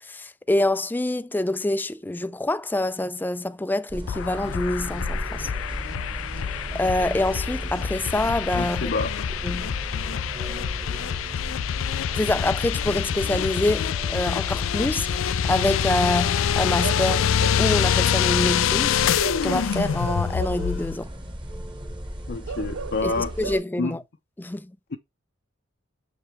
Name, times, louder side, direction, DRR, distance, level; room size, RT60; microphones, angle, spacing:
voice 1, 0.0-5.5 6.7-8.9 9.4-9.7 12.2-17.3 17.6-19.0 19.4-21.1 23.0-24.0 24.4-24.7, left 1 dB, 10° left, 0.4 m, -26 dB
sound 1, 3.9-23.6, equal, 25° right, 1.2 m, -35 dB
sound 2, 4.1-21.0, left 9 dB, 85° left, 0.3 m, -26 dB
voice 2, 8.5-9.2 22.3-23.3 23.8-24.0 24.9-25.0, left 3 dB, 60° left, 0.7 m, -28 dB
Bark / Livestock farm animals working animals, 16.8-17.8 19.2-20.7 22.5-23.6, right 7 dB, 85° right, 0.4 m, -35 dB
7.0 x 4.9 x 3.4 m
head